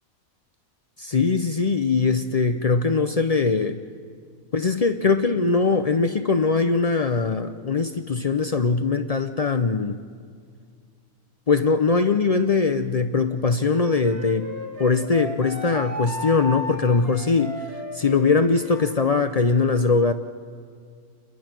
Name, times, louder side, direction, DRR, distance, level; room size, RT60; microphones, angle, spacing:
voice 1, 1.0-3.8 4.5-10.0 11.5-14.5 14.8-17.5 17.9-20.1, left 4 dB, 65° left, 8 dB, 0.3 m, -21 dB
Wind instrument woodwind instrument, 13.7-19.0, equal, 65° right, 3.2 m, -35 dB
28.5 x 22.0 x 6.0 m, 2.1 s
omnidirectional pair, 1.6 m